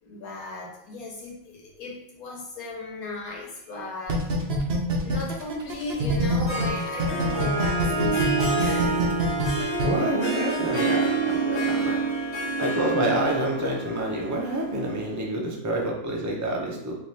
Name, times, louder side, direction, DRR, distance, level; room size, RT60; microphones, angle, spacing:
voice 1, 0.0-4.2 5.0-9.2 10.3-10.5, left 3 dB, 85° left, -2 dB, 1.5 m, -36 dB
sound 1, 4.1-6.7 7.0-9.9, right 3 dB, 55° right, 0.9 m, -25 dB
Harp, 6.2-15.2, right 3 dB, 50° left, 1.3 m, -28 dB
voice 2, 9.8-12.0 12.6-16.9, right 1 dB, 20° right, -2 dB, 0.4 m, -28 dB
3.3 x 2.8 x 4.1 m, 0.80 s
omnidirectional pair, 1.5 m